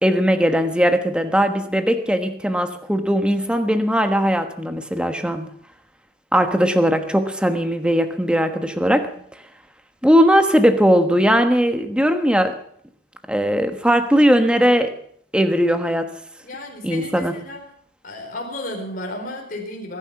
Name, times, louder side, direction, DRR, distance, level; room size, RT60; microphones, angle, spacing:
voice 1, 0.0-5.4 6.3-9.1 10.0-12.6 13.3-15.0 15.3-16.2 16.8-17.4, equal, 5° right, 8 dB, 1.2 m, -19 dB
voice 2, 16.4-17.6 18.0-20.0, left 1 dB, 45° left, 0 dB, 4.3 m, -33 dB
21.5 x 11.0 x 5.9 m, 0.64 s
head